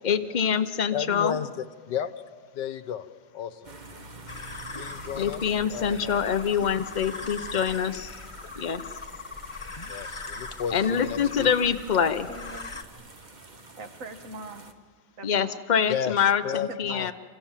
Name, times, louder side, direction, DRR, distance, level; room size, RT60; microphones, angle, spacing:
voice 1, 0.0-1.4 5.2-8.2 8.6-9.0 10.7-12.3 15.2-17.1, left 7 dB, 80° left, 9 dB, 0.4 m, -25 dB
voice 2, 0.9-1.5 1.9-3.1 3.3-3.7 4.8-5.4 5.7-6.3 9.9-11.5 15.9-16.2 16.4-17.1, left 8 dB, 65° left, 13 dB, 1.5 m, -33 dB
sound 1, 3.6-14.7, right 2 dB, 25° right, 1.2 m, -48 dB
sound 2, 4.3-12.8, left 3 dB, 25° left, 0.7 m, -40 dB
voice 3, 12.3-12.7 13.8-14.7 15.2-15.6 16.5-17.0, right 2 dB, 40° right, 7 dB, 2.0 m, -41 dB
28.0 x 27.5 x 7.4 m, 1.5 s
omnidirectional pair, 2.2 m